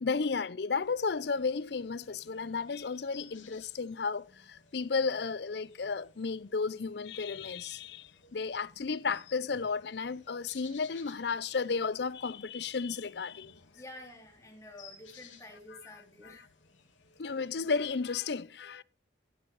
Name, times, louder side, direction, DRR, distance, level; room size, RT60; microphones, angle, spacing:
voice 1, 0.0-13.6 15.7-15.8 16.2-16.4 17.2-18.8, left 5 dB, 60° left, 0.5 m, -33 dB
sound 1, 0.8-18.1, left 6 dB, 90° left, 2.8 m, -58 dB
voice 2, 13.7-16.4, left 1 dB, 15° left, 3.3 m, -49 dB
15.0 x 7.9 x 4.7 m
head